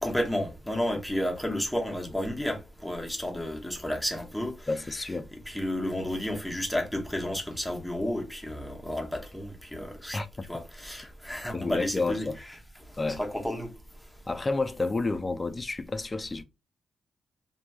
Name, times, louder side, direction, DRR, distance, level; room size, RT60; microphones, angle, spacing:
voice 1, 0.0-4.5 5.3-10.2 10.5-12.3 13.2-13.7, left 1 dB, ahead, 0.8 m, -31 dB
voice 2, 4.7-5.3 10.1-10.5 11.5-12.4 13.0-13.2 14.3-16.4, left 3 dB, 25° left, 0.3 m, -30 dB
2.9 x 2.6 x 2.2 m
cardioid pair, 100°, 0 cm